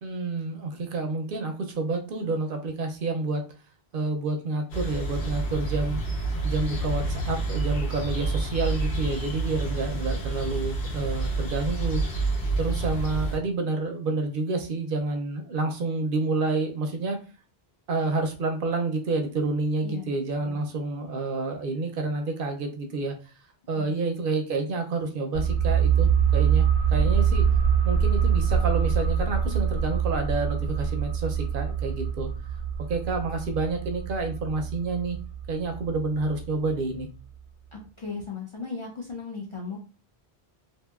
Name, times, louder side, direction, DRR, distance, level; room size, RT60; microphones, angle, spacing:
voice 1, 0.0-3.4 3.9-6.0 6.4-12.0 12.6-17.2 17.9-23.3 23.7-27.4 27.8-32.3 32.9-35.2 35.5-37.1, right 3 dB, 65° right, 4 dB, 0.7 m, -29 dB
sound 1, 4.7-13.4, right 3 dB, 85° left, 1.1 m, -28 dB
voice 2, 20.4-20.7 23.8-24.0 37.7-39.8, left 4 dB, 45° left, 0 dB, 0.4 m, -37 dB
sound 2, 25.3-36.7 37.0-37.1, right 7 dB, 80° right, 1.0 m, -24 dB
2.8 x 2.6 x 2.3 m, 0.35 s
omnidirectional pair, 1.1 m